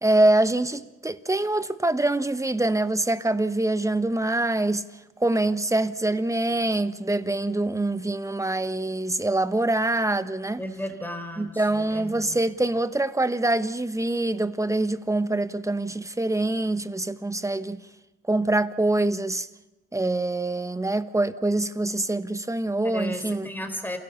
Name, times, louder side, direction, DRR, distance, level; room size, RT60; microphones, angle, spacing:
voice 1, 0.0-4.8 5.2-10.6 11.4-17.8 18.3-19.5 19.9-23.5, right 2 dB, 10° right, 1.1 m, -25 dB
voice 2, 10.6-12.4 22.9-24.0, left 1 dB, 5° left, 4.0 m, -34 dB
28.5 x 17.0 x 7.1 m
cardioid pair, 90°, 30 cm